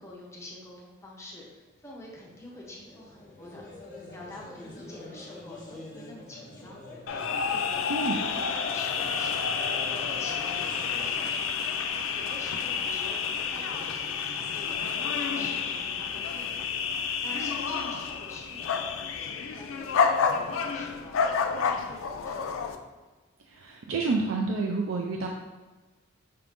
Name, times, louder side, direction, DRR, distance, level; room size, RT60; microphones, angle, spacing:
voice 1, 0.0-3.6 4.1-6.8 7.3-9.4 9.9-11.5 12.1-16.7 17.2-21.2 21.5-22.8, left 1 dB, 15° left, -3 dB, 0.6 m, -47 dB
sound 1, 1.7-16.6, left 1 dB, 35° left, 0.9 m, -48 dB
sound 2, 7.1-22.8, left 6 dB, 70° left, 0.4 m, -29 dB
voice 2, 23.5-25.3, right 3 dB, 75° right, 0 dB, 0.4 m, -29 dB
5.6 x 2.5 x 3.5 m, 1.2 s
head